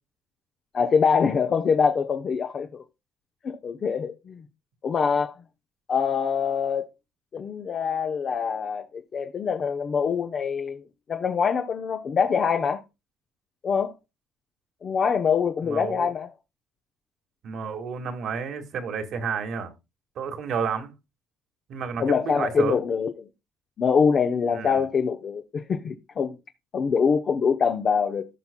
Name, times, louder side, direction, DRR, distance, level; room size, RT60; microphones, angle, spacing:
voice 1, 0.7-2.8 3.4-4.5 4.8-5.3 5.9-6.9 7.3-12.8 13.6-13.9 14.8-16.3 22.0-23.1 23.8-26.4 26.7-28.3, left 6 dB, 45° left, 0.8 m, -24 dB
voice 2, 15.6-16.1 17.4-19.7 20.2-20.9 21.7-22.8 24.5-24.8, right 6 dB, 60° right, 1.8 m, -31 dB
15.0 x 5.7 x 2.2 m
supercardioid pair, 90°, 0 cm